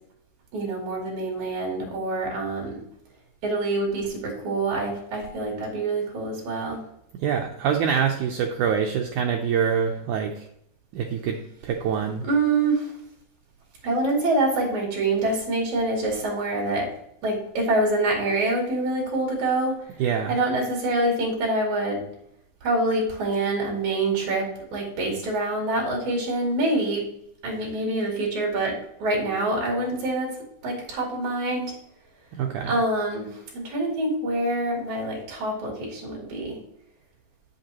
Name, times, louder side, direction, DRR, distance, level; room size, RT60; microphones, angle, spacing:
voice 1, 0.5-2.8 3.4-6.8 12.3-12.9 13.8-16.9 17.2-19.8 20.3-22.0 22.6-27.0 27.4-30.3 30.6-31.7 32.7-36.6, right 2 dB, 55° right, -1 dB, 3.7 m, -26 dB
voice 2, 7.2-10.5 10.9-11.4 11.6-12.2 20.0-20.4 32.4-32.7, right 7 dB, 85° right, 3 dB, 1.7 m, -25 dB
8.3 x 7.9 x 2.9 m, 0.73 s
omnidirectional pair, 4.3 m